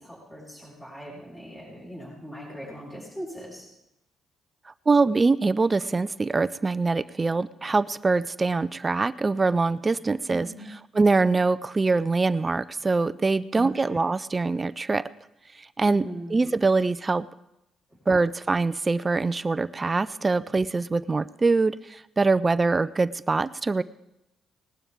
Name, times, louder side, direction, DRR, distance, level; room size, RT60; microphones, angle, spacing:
voice 1, 0.0-3.7 10.3-10.7 13.5-14.0 15.8-16.4, equal, 15° left, -5 dB, 5.9 m, -40 dB
voice 2, 4.7-10.7 10.9-15.1 15.6-17.3 18.1-23.8, right 3 dB, 25° right, 15 dB, 0.4 m, -24 dB
19.5 x 12.0 x 3.5 m, 0.86 s
cardioid pair, 90°, 0 cm